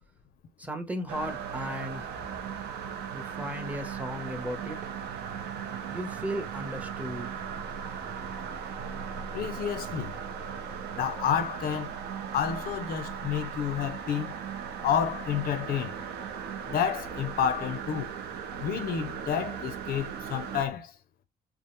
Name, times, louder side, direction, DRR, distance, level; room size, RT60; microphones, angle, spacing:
voice 1, 0.6-2.1 3.1-4.8 5.9-7.3, equal, 10° right, 0.6 m, -35 dB
sound 1, 1.1-20.6, right 7 dB, 75° right, 0.5 m, -37 dB
voice 2, 9.3-10.1 10.9-12.0 12.3-14.4 14.8-16.0 16.7-18.1 18.6-20.9, left 8 dB, 65° left, 0.5 m, -30 dB
2.4 x 2.0 x 2.9 m
cardioid pair, 110°, 17 cm